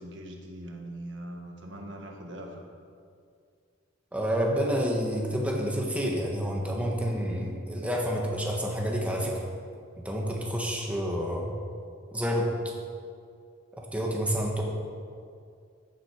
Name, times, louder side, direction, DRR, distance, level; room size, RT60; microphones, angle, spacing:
voice 1, 0.0-2.7, right 1 dB, 65° right, 1 dB, 1.6 m, -41 dB
voice 2, 4.1-9.4 10.0-11.5 12.1-12.5 13.7-14.6, equal, 5° right, -1 dB, 1.3 m, -29 dB
14.5 x 7.5 x 5.0 m, 2.3 s
head